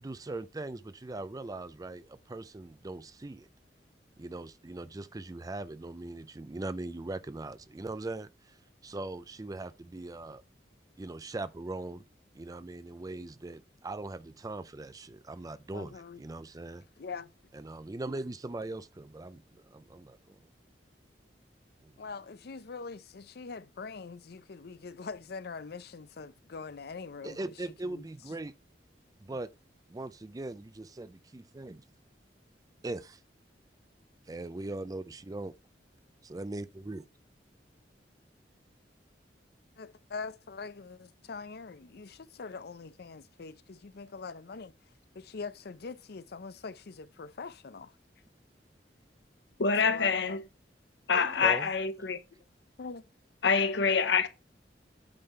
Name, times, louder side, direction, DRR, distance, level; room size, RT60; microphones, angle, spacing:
voice 1, 0.0-3.5 4.2-10.4 11.0-12.0 12.3-16.8 17.5-20.4 21.8-22.0 27.2-28.5 29.2-29.5 29.9-31.8 32.8-33.2 34.3-35.5 36.2-37.0 51.1-51.7, right 2 dB, 20° right, 0.4 m, -40 dB
voice 2, 15.7-16.2 17.0-17.3 22.0-27.5 27.8-28.1 39.8-44.7 45.1-47.9 49.8-50.4 52.8-53.0, left 4 dB, 65° left, 0.6 m, -43 dB
voice 3, 49.6-50.4 51.1-52.2 53.4-54.3, left 5 dB, 85° left, 0.9 m, -26 dB
8.7 x 3.7 x 5.3 m
head